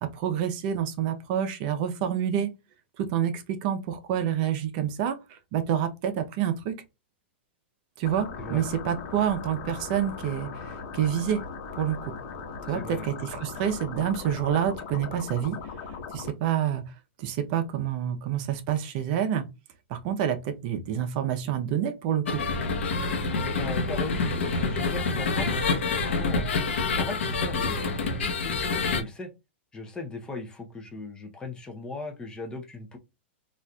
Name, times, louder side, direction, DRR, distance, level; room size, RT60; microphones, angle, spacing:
voice 1, 0.0-2.5 3.0-6.7 8.0-11.4 11.7-12.1 12.7-15.6 16.1-16.8 17.2-19.5 19.9-22.4, right 9 dB, 45° right, 0.6 m, -28 dB
sound 1, 8.0-16.3, left 5 dB, 50° left, 1.0 m, -39 dB
voice 2, 12.7-13.1 23.3-26.4 26.9-29.3 29.7-33.0, left 3 dB, 10° left, 0.6 m, -38 dB
sound 2, 22.3-29.0, left 3 dB, 85° left, 0.9 m, -27 dB
4.0 x 2.5 x 2.2 m
hypercardioid pair, 140°, 6 cm